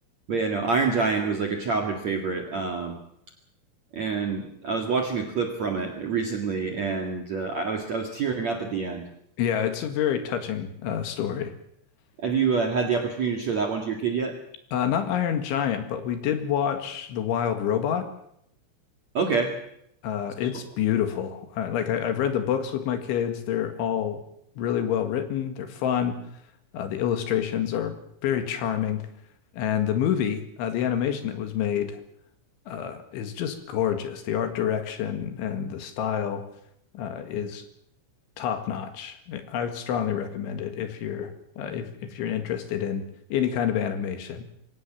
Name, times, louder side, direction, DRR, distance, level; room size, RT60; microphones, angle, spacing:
voice 1, 0.3-3.0 3.9-9.0 12.2-14.4 19.1-19.5, right 5 dB, 55° right, 3 dB, 2.1 m, -26 dB
voice 2, 9.4-11.5 14.7-18.1 20.0-24.2 24.6-26.2 26.7-28.0 28.2-29.0 29.5-32.0 32.7-36.4 36.9-37.7 38.4-43.1 43.3-44.4, left 9 dB, 70° left, 8 dB, 4.1 m, -28 dB
23.5 x 17.5 x 7.5 m, 0.74 s
omnidirectional pair, 5.9 m